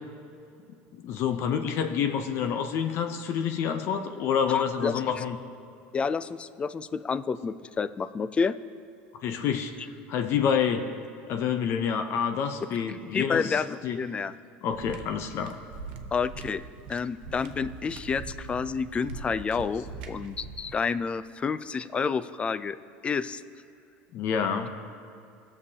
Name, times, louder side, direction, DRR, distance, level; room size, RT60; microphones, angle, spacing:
voice 1, 0.9-5.4 9.2-10.9 11.3-14.0 14.6-15.5 24.1-24.7, left 7 dB, 50° left, 7 dB, 0.7 m, -28 dB
voice 2, 4.5-5.2 5.9-8.6 13.1-14.3 16.1-16.6 16.9-22.8 23.0-23.4, left 5 dB, 20° left, 15 dB, 0.3 m, -29 dB
sound 1, 14.7-20.9, right 4 dB, 80° right, 0.8 m, -42 dB
18.5 x 6.9 x 2.8 m, 2.5 s
supercardioid pair, 120°, 5 cm